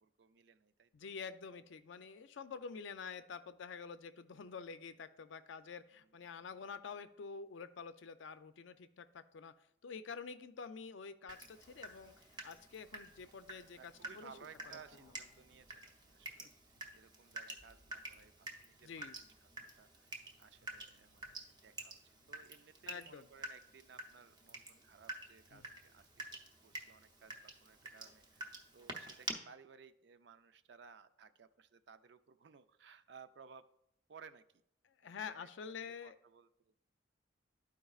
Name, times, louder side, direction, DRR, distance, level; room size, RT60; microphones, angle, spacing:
voice 1, 0.0-1.1 5.9-6.3 13.8-16.5 16.9-19.5 19.8-33.7 34.1-34.6 35.0-36.7, right 6 dB, 65° right, 12 dB, 0.4 m, -60 dB
voice 2, 0.9-9.5 9.8-12.1 12.4-14.3 16.4-16.5 18.8-19.2 22.9-23.3 25.5-25.6 35.0-36.2, left 5 dB, 80° left, 11 dB, 0.4 m, -48 dB
Water tap faucet / Drip, 11.3-29.3, right 2 dB, 20° right, 0.6 m, -50 dB
12.5 x 4.7 x 2.4 m, 0.78 s
head